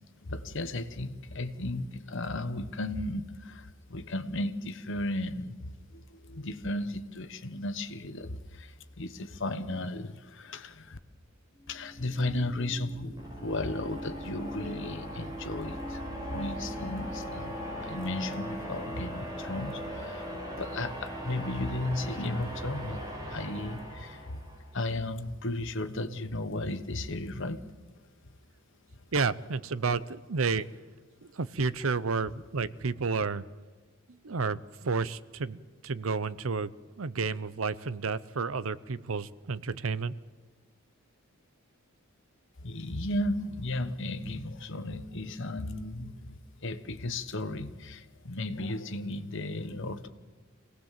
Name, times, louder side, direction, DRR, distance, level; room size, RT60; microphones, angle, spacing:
voice 1, 0.2-11.0 11.7-16.0 16.3-20.3 20.5-24.2 24.7-27.7 42.6-50.1, left 1 dB, 60° left, 10 dB, 1.2 m, -35 dB
sound 1, 11.6-24.7, equal, 20° right, 4.7 m, -39 dB
voice 2, 29.1-30.7 31.2-33.4 34.1-36.7 37.0-40.1, right 4 dB, 70° right, 16 dB, 0.7 m, -31 dB
25.5 x 18.5 x 7.5 m, 1.4 s
head